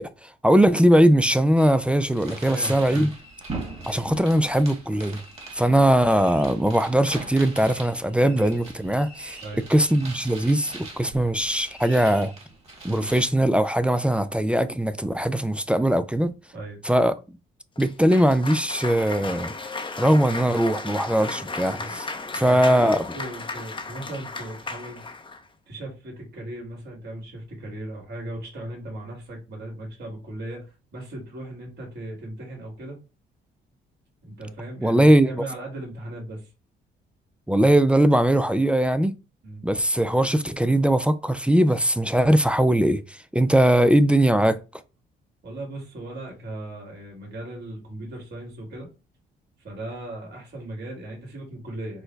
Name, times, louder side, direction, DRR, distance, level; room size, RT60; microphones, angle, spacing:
voice 1, 0.0-3.1 3.9-5.2 5.5-9.4 9.7-12.3 12.8-16.4 16.8-17.1 17.8-19.5 20.0-22.1 22.3-23.0 34.8-35.3 37.5-39.2 39.6-44.6, right 1 dB, 5° right, 0.4 m, -20 dB
sound 1, 1.6-13.3, right 3 dB, 30° right, 1.9 m, -41 dB
voice 2, 2.4-3.1 8.2-8.5 9.4-9.7 12.9-13.1 16.5-16.8 21.7-25.0 25.7-33.0 34.2-36.5 39.4-39.6 45.4-48.9 49.6-52.0, right 1 dB, 60° right, 2.1 m, -37 dB
Cheering / Applause, 17.8-25.4, left 3 dB, 25° left, 0.7 m, -35 dB
4.5 x 2.2 x 4.4 m
cardioid pair, 90°, 20 cm